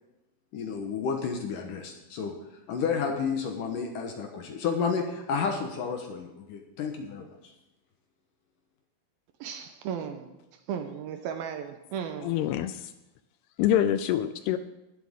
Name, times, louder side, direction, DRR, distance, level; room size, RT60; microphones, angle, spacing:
voice 1, 0.5-2.3 2.7-7.5, left 5 dB, 65° left, 3 dB, 2.3 m, -31 dB
voice 2, 9.4-10.3 10.7-12.3, right 8 dB, 75° right, 6 dB, 2.4 m, -35 dB
voice 3, 12.2-12.9 13.6-14.6, left 11 dB, 80° left, 11 dB, 2.4 m, -26 dB
17.0 x 11.5 x 3.6 m, 0.96 s
omnidirectional pair, 4.8 m